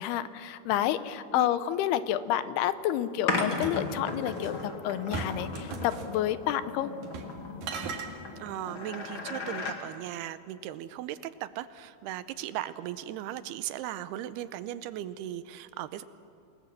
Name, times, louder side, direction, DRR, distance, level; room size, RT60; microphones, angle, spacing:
voice 1, 0.0-6.9, left 12 dB, 80° left, 13 dB, 2.7 m, -29 dB
voice 2, 1.4-1.7 8.4-16.0, right 12 dB, 80° right, 13 dB, 2.6 m, -37 dB
sound 1, 3.3-9.8, left 3 dB, 40° left, 2.2 m, -36 dB
sound 2, 3.3-4.6 5.1-6.1 7.0-7.3 7.6-8.1, right 5 dB, 65° right, 3.3 m, -38 dB
28.0 x 19.5 x 7.5 m, 2.5 s
omnidirectional pair, 4.7 m